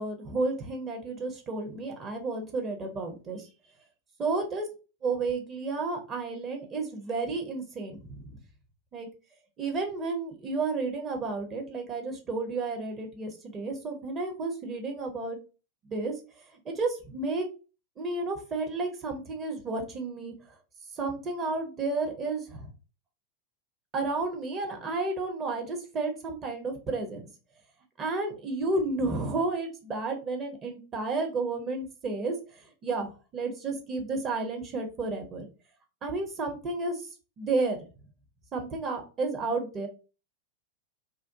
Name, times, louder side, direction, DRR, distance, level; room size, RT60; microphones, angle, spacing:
voice 1, 0.0-3.5 4.2-4.7 5.0-8.4 8.9-9.1 9.6-15.4 15.8-17.5 18.0-20.3 20.9-22.7 23.9-27.2 28.0-35.5 36.0-37.1 37.4-37.8 38.5-39.9, right 3 dB, 30° right, 3 dB, 0.7 m, -32 dB
2.5 x 2.1 x 2.5 m, 0.33 s
figure-of-eight pair, 90°, 0 cm